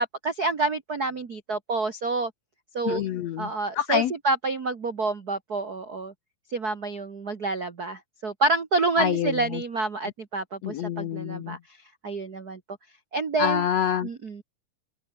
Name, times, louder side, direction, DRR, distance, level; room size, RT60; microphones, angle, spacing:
voice 1, 0.0-2.3 2.7-3.0 3.4-6.1 6.5-11.6 12.0-12.6 13.1-13.6 14.0-14.4, right 3 dB, 70° right, 0.9 m, -28 dB
voice 2, 2.8-4.1 9.0-9.6 10.6-11.6 13.4-14.1, left 10 dB, 80° left, 1.5 m, -27 dB
omnidirectional pair, 4.5 m